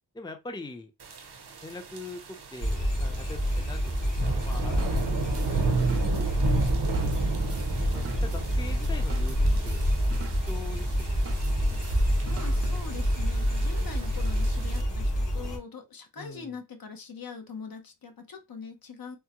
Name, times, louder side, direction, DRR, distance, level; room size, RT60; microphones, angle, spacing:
voice 1, 0.1-0.9 1.6-6.5 7.2-9.9 10.5-11.3 16.2-16.5, left 3 dB, 10° left, 0.5 m, -43 dB
sound 1, 1.0-14.8, right 4 dB, 65° right, 0.8 m, -34 dB
sound 2, 2.6-15.6, equal, 85° left, 1.4 m, -27 dB
sound 3, 4.5-13.2, right 5 dB, 35° right, 0.5 m, -47 dB
voice 2, 12.2-19.2, left 5 dB, 55° left, 0.8 m, -42 dB
3.5 x 2.1 x 2.9 m
cardioid pair, 55°, 42 cm